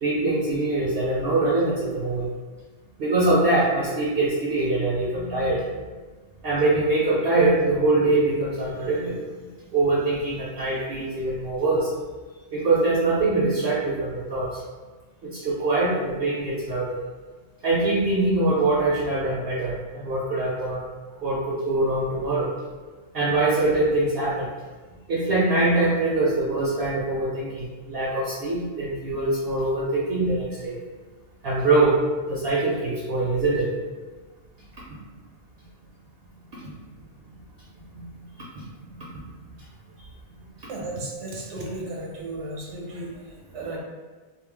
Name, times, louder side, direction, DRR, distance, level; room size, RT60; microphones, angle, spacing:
voice 1, 0.0-2.3 3.0-5.7 6.4-11.9 12.5-14.6 15.2-17.0 17.6-20.9 21.2-22.5 23.1-24.5 25.1-30.8 31.4-32.0 32.3-33.7 36.6-36.7 37.9-38.6 39.0-39.2, right 2 dB, 65° right, -6 dB, 0.7 m, -23 dB
voice 2, 40.7-43.8, right 2 dB, 80° right, -2 dB, 1.0 m, -34 dB
2.3 x 2.1 x 3.2 m, 1.3 s
omnidirectional pair, 1.2 m